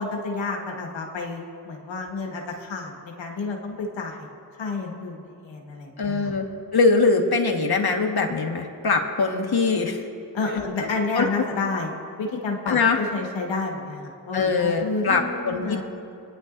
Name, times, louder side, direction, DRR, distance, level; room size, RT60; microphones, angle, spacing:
voice 1, 0.0-4.3 4.6-6.3 10.3-11.9 12.2-15.8, left 3 dB, 85° left, 1 dB, 1.5 m, -30 dB
voice 2, 6.0-6.4 6.7-10.0 10.5-10.9 11.1-11.3 12.7-13.0 14.3-15.6, left 4 dB, 55° left, 2 dB, 1.6 m, -22 dB
26.0 x 10.0 x 2.6 m, 2.5 s
cardioid pair, 45°, 44 cm